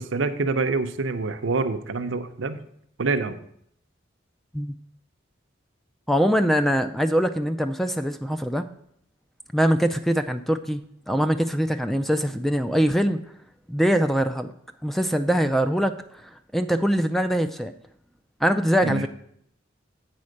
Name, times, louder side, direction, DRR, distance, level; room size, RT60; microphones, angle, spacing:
voice 1, 0.0-2.6 3.0-3.4 18.8-19.1, right 3 dB, 75° right, 9 dB, 0.6 m, -26 dB
voice 2, 6.1-8.6 9.5-10.8 11.1-13.2 13.7-14.5 14.8-16.0 16.5-17.7 18.4-19.1, equal, ahead, 9 dB, 0.3 m, -22 dB
8.4 x 4.3 x 6.4 m, 0.70 s
head